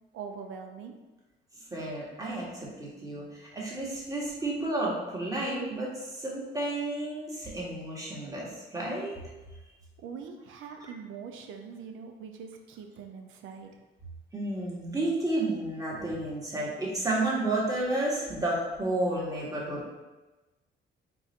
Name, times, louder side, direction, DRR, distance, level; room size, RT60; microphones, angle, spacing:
voice 1, 0.1-0.9 10.0-13.8, right 6 dB, 85° right, 5 dB, 0.6 m, -43 dB
voice 2, 1.7-9.2 14.3-19.9, right 2 dB, 15° right, -5 dB, 1.5 m, -31 dB
3.9 x 2.6 x 3.9 m, 1.1 s
cardioid pair, 90°, 20 cm